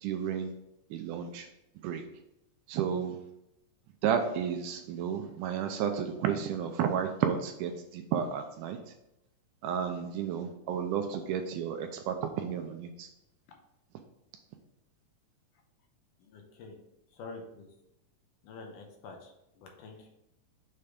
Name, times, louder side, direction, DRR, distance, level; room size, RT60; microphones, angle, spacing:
voice 1, 0.0-0.6 0.9-1.5 1.8-2.1 2.7-3.3 4.0-8.8 9.6-13.1, right 8 dB, 80° right, 6 dB, 1.9 m, -32 dB
voice 2, 16.2-16.8 17.1-17.7 18.4-20.1, left 3 dB, 75° left, 2 dB, 2.3 m, -47 dB
6.8 x 3.2 x 5.0 m, 0.85 s
omnidirectional pair, 3.9 m